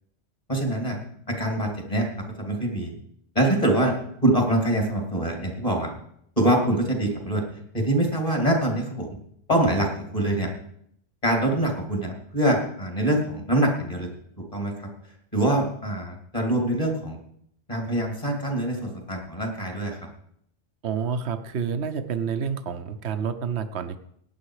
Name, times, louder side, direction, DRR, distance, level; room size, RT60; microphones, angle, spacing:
voice 1, 0.5-1.0 1.3-2.1 2.4-2.9 3.3-4.0 4.2-5.9 6.4-7.4 7.7-9.2 9.5-9.9 10.1-10.5 11.2-14.1 14.4-14.9 15.3-17.2 17.7-20.0, right 1 dB, 30° left, 2 dB, 3.0 m, -24 dB
voice 2, 20.8-24.0, right 6 dB, 75° right, 9 dB, 1.2 m, -29 dB
17.5 x 9.6 x 4.9 m, 0.70 s
omnidirectional pair, 1.1 m